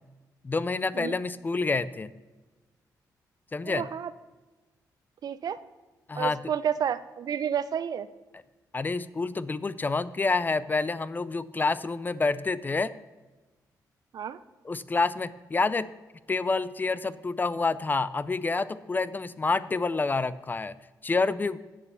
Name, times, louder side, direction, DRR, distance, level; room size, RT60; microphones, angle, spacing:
voice 1, 0.4-2.1 3.5-3.8 6.1-6.4 8.7-12.9 14.7-15.9 16.3-20.7 21.0-21.6, left 3 dB, 25° left, 17 dB, 0.4 m, -28 dB
voice 2, 3.6-4.1 5.2-5.6 6.1-8.1 14.1-14.4, right 8 dB, 60° right, 15 dB, 0.5 m, -30 dB
8.6 x 6.9 x 6.8 m, 1.2 s
cardioid pair, 90°, 7 cm